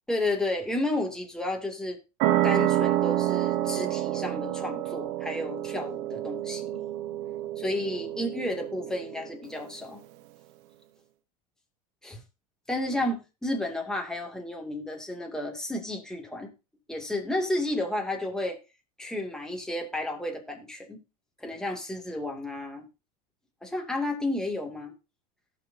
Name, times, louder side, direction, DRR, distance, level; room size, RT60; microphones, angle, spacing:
voice 1, 0.1-2.0 2.4-6.8 7.6-10.0 12.0-12.2 12.7-16.5 16.9-18.6 19.0-21.0 21.4-22.9 23.6-24.9, left 1 dB, 5° left, 1 dB, 2.4 m, -32 dB
sound 1, 2.2-9.4, right 14 dB, 65° right, 1.0 m, -28 dB
17.5 x 6.2 x 2.7 m, 0.28 s
supercardioid pair, 115°, 21 cm